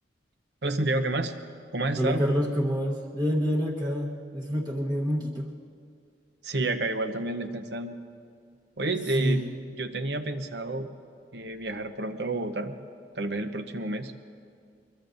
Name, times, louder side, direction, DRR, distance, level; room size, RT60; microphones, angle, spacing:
voice 1, 0.6-1.3 1.7-2.2 6.4-7.9 8.8-9.4 9.8-10.9 11.3-12.7 13.1-14.1, right 2 dB, 70° right, 8 dB, 0.9 m, -29 dB
voice 2, 2.0-5.5 9.2-9.4, equal, 25° right, -3 dB, 1.1 m, -27 dB
22.5 x 22.0 x 2.7 m, 2.3 s
head